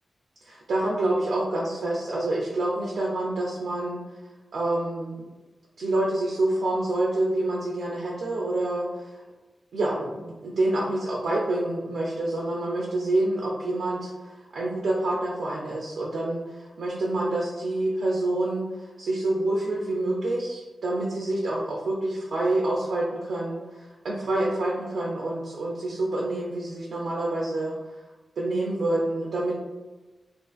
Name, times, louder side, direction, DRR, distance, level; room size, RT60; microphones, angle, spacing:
voice 1, 0.4-4.0 4.5-5.2 5.8-9.1 9.7-27.7 28.4-29.6, right 2 dB, 80° right, -4 dB, 0.4 m, -27 dB
2.4 x 2.4 x 2.3 m, 1.2 s
wide cardioid pair, 130°, 0 cm